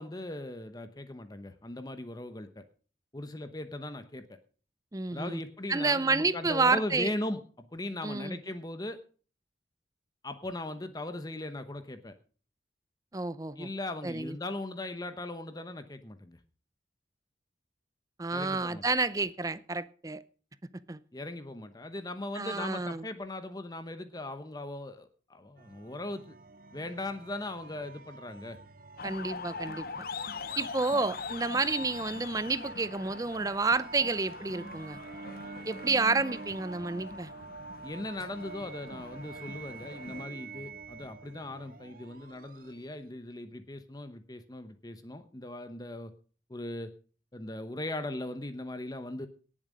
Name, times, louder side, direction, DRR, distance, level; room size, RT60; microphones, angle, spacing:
voice 1, 0.0-2.6 3.1-4.4 5.1-9.0 10.2-12.1 13.6-16.4 18.3-18.8 21.1-26.3 26.7-28.6 37.8-46.1 46.5-46.9 47.3-49.3, left 1 dB, 20° left, 0.9 m, -39 dB
voice 2, 4.9-5.4 5.7-7.1 8.0-8.4 13.1-13.7 14.0-14.4 18.2-20.2 20.9-21.0 22.3-23.0 29.0-29.9 30.6-35.0 35.7-37.3, right 3 dB, 20° right, 0.5 m, -30 dB
sound 1, 25.6-43.1, right 3 dB, 50° right, 0.8 m, -47 dB
sound 2, 29.0-40.2, left 5 dB, 55° left, 0.8 m, -43 dB
18.5 x 7.5 x 5.1 m
head